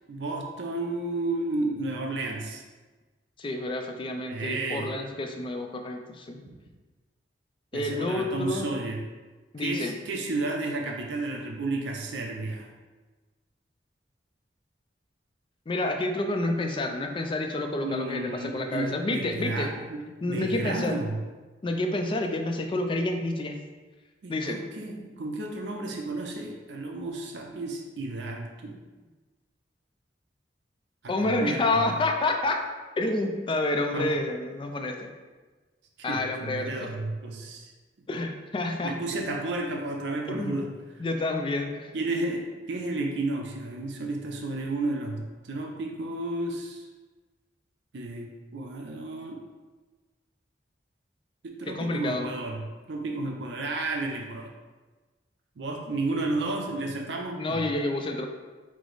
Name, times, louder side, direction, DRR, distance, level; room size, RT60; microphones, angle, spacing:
voice 1, 0.1-2.6 4.3-4.9 7.7-9.0 9.6-12.7 17.8-20.0 20.3-21.2 24.2-28.8 31.0-32.0 33.9-34.1 36.1-37.7 38.8-40.7 41.9-46.9 47.9-49.4 51.4-54.5 55.6-57.6, right 2 dB, 80° right, 1 dB, 0.5 m, -32 dB
voice 2, 3.4-6.4 7.7-8.7 9.5-10.0 15.7-19.7 20.2-21.0 21.6-23.6 24.3-24.7 31.1-32.6 33.0-35.1 36.0-36.9 38.1-39.0 40.3-40.6 41.0-41.9 51.7-52.3 57.4-58.3, left 2 dB, 30° left, 4 dB, 0.4 m, -29 dB
4.8 x 2.0 x 3.9 m, 1.3 s
head